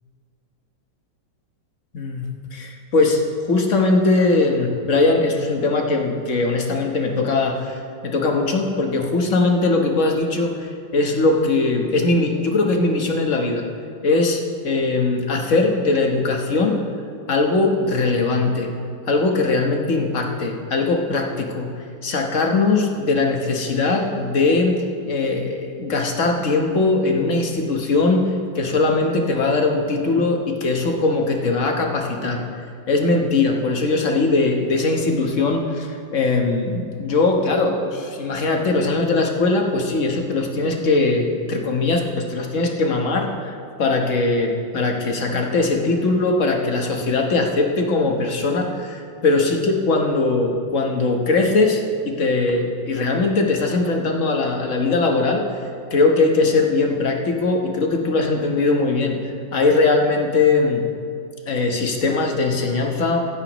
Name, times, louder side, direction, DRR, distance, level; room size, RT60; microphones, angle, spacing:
voice 1, 1.9-13.6 14.0-16.8 17.3-18.7 19.0-21.7 22.0-24.8 25.0-28.2 28.5-32.4 32.9-55.4 55.9-60.8 61.5-63.4, left 3 dB, 45° left, 2 dB, 1.4 m, -20 dB
16.0 x 14.0 x 3.0 m, 2.3 s
omnidirectional pair, 2.0 m